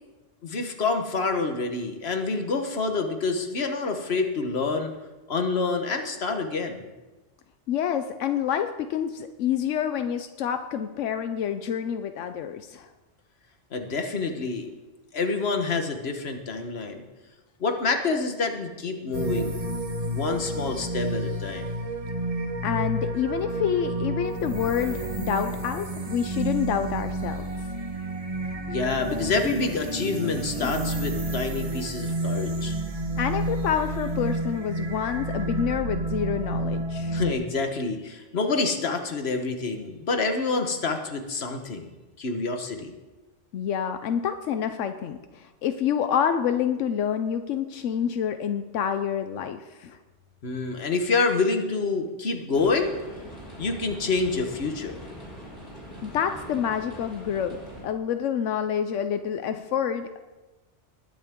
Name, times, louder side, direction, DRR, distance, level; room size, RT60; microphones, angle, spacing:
voice 1, 0.4-4.9 5.3-6.8 13.7-14.7 15.1-17.0 17.6-19.7 20.0-21.7 28.7-32.8 37.1-41.9 42.2-42.9 50.4-53.0 53.6-55.1, left 4 dB, 60° left, 5 dB, 1.5 m, -27 dB
voice 2, 7.7-12.9 22.6-27.4 30.6-30.7 33.2-37.2 43.5-50.0 56.0-57.6 57.8-60.2, left 8 dB, 85° left, 8 dB, 1.0 m, -28 dB
sound 1, 19.1-37.3, right 2 dB, 30° right, 1.1 m, -30 dB
sound 2, 52.5-57.8, equal, 40° left, 6.2 m, -42 dB
20.0 x 10.0 x 3.7 m, 1.1 s
omnidirectional pair, 1.2 m